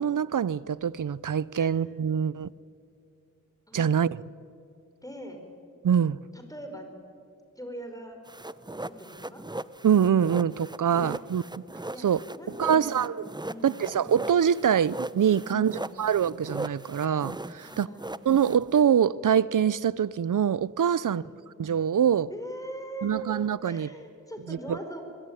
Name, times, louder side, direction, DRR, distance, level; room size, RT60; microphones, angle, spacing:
voice 1, 0.0-2.5 3.7-4.2 5.8-6.2 9.8-11.4 12.0-12.2 12.6-13.2 13.6-17.9 18.2-21.2 21.6-22.3 23.0-23.9 24.5-24.6, right 8 dB, 80° right, 0.6 m, -24 dB
voice 2, 5.0-5.4 6.3-6.9 7.6-8.2 8.7-9.4 10.9-11.2 11.9-12.1 12.4-13.1 13.4-13.9 15.4-16.1 17.6-18.2 21.0-21.4 22.3-23.3 23.6-25.0, right 1 dB, 10° left, 5.4 m, -41 dB
sound 1, 8.3-18.8, right 1 dB, 15° right, 0.8 m, -38 dB
23.5 x 21.5 x 9.8 m
wide cardioid pair, 45°, 31 cm